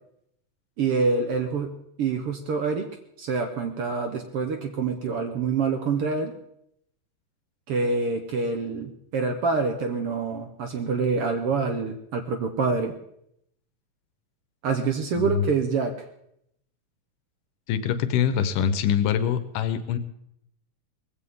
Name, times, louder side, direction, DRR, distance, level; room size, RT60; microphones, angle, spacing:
voice 1, 0.8-2.9 3.2-6.3 7.7-12.9 14.6-15.9, right 4 dB, 65° right, 6 dB, 1.5 m, -26 dB
voice 2, 15.1-15.5 17.7-20.0, left 8 dB, 90° left, 11 dB, 2.6 m, -24 dB
19.5 x 15.5 x 3.7 m, 0.75 s
omnidirectional pair, 3.6 m